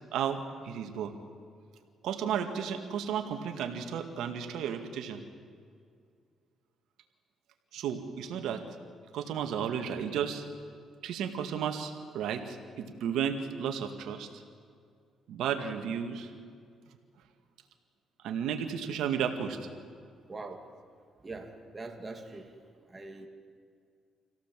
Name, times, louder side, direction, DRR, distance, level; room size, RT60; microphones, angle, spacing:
voice 1, 0.6-1.1 2.0-5.2 7.7-8.6 9.1-10.4 11.0-14.3 15.3-16.3 18.2-19.7, right 8 dB, 80° right, 5 dB, 2.0 m, -33 dB
voice 2, 20.3-20.7 21.2-22.6 22.9-23.3, right 3 dB, 25° right, 4 dB, 2.7 m, -43 dB
26.0 x 17.0 x 7.7 m, 2.2 s
cardioid pair, 90°, 0 cm